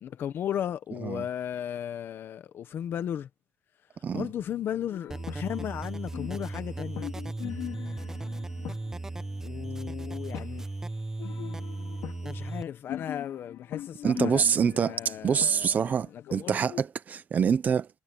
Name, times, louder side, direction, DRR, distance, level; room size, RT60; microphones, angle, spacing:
voice 1, 0.0-3.3 4.1-7.1 9.4-10.7 12.2-16.6, left 10 dB, 55° left, 1.1 m, -35 dB
sound 1, 4.9-5.8 6.0-10.5 11.2-16.9, left 12 dB, 80° left, 5.2 m, -41 dB
sound 2, 5.1-12.6, right 2 dB, 10° right, 1.1 m, -36 dB
voice 2, 14.0-17.9, right 7 dB, 40° right, 1.0 m, -26 dB
cardioid pair, 155°, 5 cm